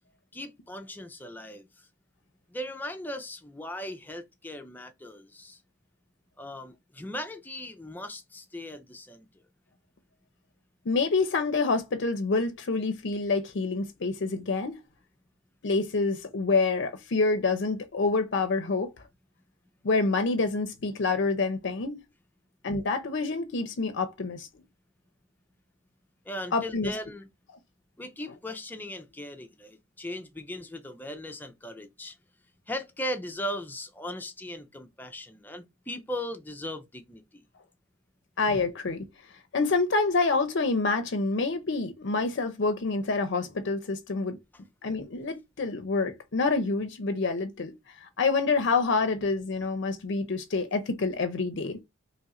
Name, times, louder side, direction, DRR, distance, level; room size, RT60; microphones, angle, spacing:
voice 1, 0.3-1.9 2.5-5.6 6.4-9.3 26.3-27.3 28.0-32.2 32.7-37.4, left 1 dB, 10° left, 0.5 m, -38 dB
voice 2, 10.9-14.8 15.6-18.9 19.8-22.0 22.6-24.5 26.5-26.9 38.4-39.0 39.5-44.4 44.8-47.7 48.0-51.8, left 3 dB, 60° left, 0.5 m, -27 dB
3.1 x 2.5 x 4.1 m
head